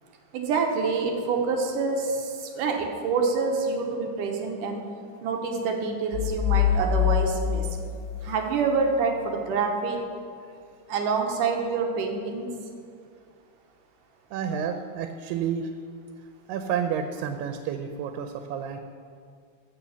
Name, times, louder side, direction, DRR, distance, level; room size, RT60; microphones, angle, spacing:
voice 1, 0.3-4.8 5.2-7.7 8.2-10.0 10.9-12.5, right 4 dB, 70° right, 3 dB, 2.1 m, -26 dB
sound 1, 6.1-8.8, left 9 dB, 80° left, 2.2 m, -25 dB
voice 2, 14.3-15.7 16.5-18.8, right 7 dB, 85° right, 7 dB, 2.7 m, -30 dB
14.5 x 5.7 x 7.0 m, 2.2 s
omnidirectional pair, 4.5 m